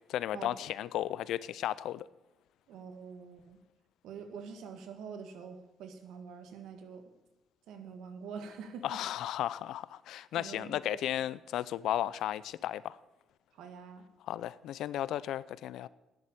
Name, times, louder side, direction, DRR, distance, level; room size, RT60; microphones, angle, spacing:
voice 1, 0.1-2.1 8.8-13.0 14.3-15.9, left 12 dB, 80° left, 0.5 m, -34 dB
voice 2, 2.7-3.6 4.0-7.0 7.7-9.0 10.3-11.0 13.5-14.1, right 6 dB, 85° right, 1.7 m, -45 dB
10.5 x 7.7 x 8.6 m
cardioid pair, 90°, 0 cm